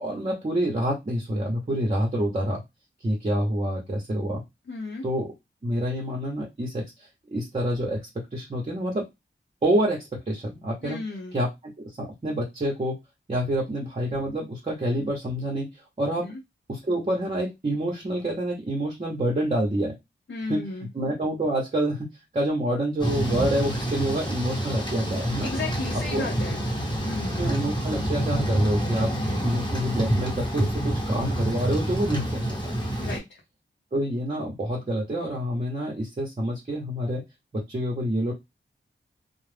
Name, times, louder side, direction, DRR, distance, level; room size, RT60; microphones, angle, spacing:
voice 1, 0.0-2.6 3.0-4.4 5.0-5.3 5.6-6.8 7.3-8.0 8.3-9.1 9.6-11.0 11.3-11.7 12.0-13.0 13.3-16.3 16.7-19.9 20.5-20.7 20.9-22.1 22.3-25.5 26.1-26.4 27.4-29.2 29.4-32.7 33.9-37.2 37.5-38.3, right 1 dB, 35° right, -2 dB, 0.8 m, -27 dB
voice 2, 4.7-5.0 10.8-11.4 16.2-16.4 20.3-20.9 25.4-26.6 27.0-27.5 29.2-29.6 33.0-33.4, left 3 dB, 65° left, 0 dB, 0.7 m, -34 dB
Thunder / Rain, 23.0-33.2, right 1 dB, 20° left, 1.1 m, -27 dB
2.3 x 2.0 x 3.2 m, 0.20 s
wide cardioid pair, 100°, 20 cm